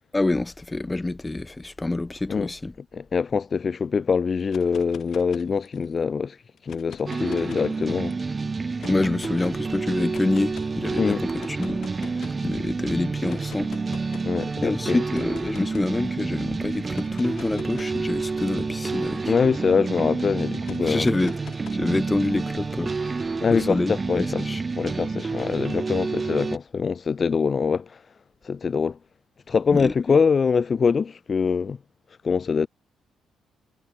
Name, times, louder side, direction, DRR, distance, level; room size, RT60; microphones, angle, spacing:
voice 1, 0.1-2.7 8.9-13.7 14.6-19.3 20.8-21.4 21.7-23.2 23.5-24.6 29.7-29.9, left 2 dB, 15° left, 1.6 m, -27 dB
voice 2, 2.9-6.4 6.6-8.2 11.0-11.2 14.2-15.0 19.3-21.1 23.4-24.5 24.8-28.0 28.4-29.0 29.5-31.8 32.2-32.7, left 5 dB, 40° left, 0.5 m, -24 dB
sound 1, 4.4-6.0 6.6-8.1 8.8-9.6 10.1-10.7 11.4-12.5 13.3-14.4 15.1-16.0 16.8-19.7 20.6-22.2, left 9 dB, 60° left, 6.1 m, -44 dB
sound 2, 7.1-26.6, right 4 dB, 30° right, 1.2 m, -29 dB
cardioid pair, 85°, 0 cm